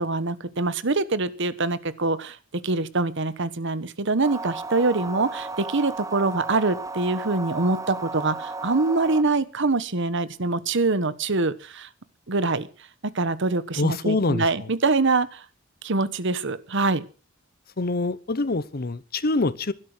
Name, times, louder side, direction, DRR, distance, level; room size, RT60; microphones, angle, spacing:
voice 1, 0.0-2.4 2.6-11.9 12.3-12.7 13.0-15.4 15.8-17.1, right 3 dB, 60° right, 1.2 m, -24 dB
sound 1, 4.2-9.2, right 3 dB, 15° right, 0.8 m, -34 dB
voice 2, 13.8-14.5 17.8-19.7, left 2 dB, 50° left, 0.8 m, -25 dB
16.0 x 12.5 x 6.2 m
head